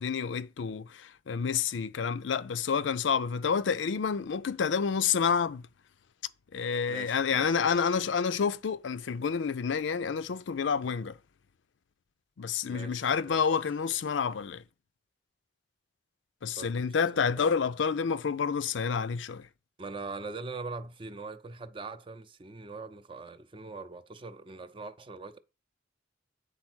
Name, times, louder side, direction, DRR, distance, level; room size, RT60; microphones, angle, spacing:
voice 1, 0.0-5.6 6.5-11.2 12.4-14.6 16.4-19.5, left 6 dB, 85° left, 0.5 m, -29 dB
voice 2, 6.9-7.9 12.6-13.4 13.9-14.0 16.5-16.7 17.1-17.8 19.8-25.4, right 3 dB, 30° right, 0.5 m, -42 dB
8.5 x 4.1 x 6.1 m
head